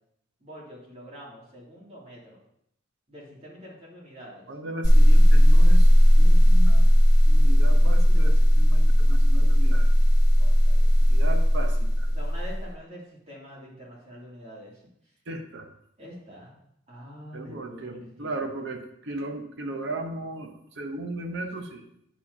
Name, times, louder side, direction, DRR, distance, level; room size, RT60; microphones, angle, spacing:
voice 1, 0.4-2.4 3.1-4.5 10.4-10.9 12.1-14.8 16.0-16.6 16.9-18.5, equal, 35° right, -5 dB, 2.4 m, -45 dB
voice 2, 4.5-5.9 6.2-6.8 7.3-9.9 11.1-12.1 15.3-15.7 17.3-21.8, right 2 dB, 60° right, 5 dB, 0.9 m, -36 dB
sound 1, 4.8-12.6, equal, 20° left, 1.1 m, -17 dB
9.0 x 7.2 x 2.7 m, 0.74 s
head